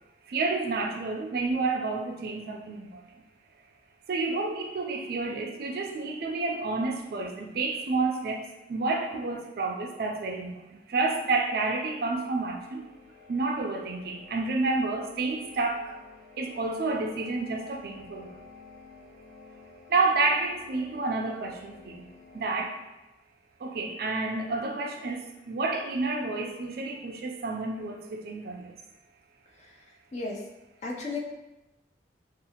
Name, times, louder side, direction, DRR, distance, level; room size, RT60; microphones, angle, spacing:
voice 1, 0.3-3.0 4.1-12.8 13.3-16.0 16.4-18.4 19.9-22.8 23.6-28.7, right 3 dB, 55° right, 2 dB, 0.3 m, -30 dB
sound 1, 12.4-22.7, left 4 dB, 60° left, 1.0 m, -51 dB
voice 2, 30.1-30.4 30.8-31.2, left 3 dB, 40° left, -1 dB, 0.4 m, -34 dB
2.6 x 2.3 x 2.8 m, 1.0 s
head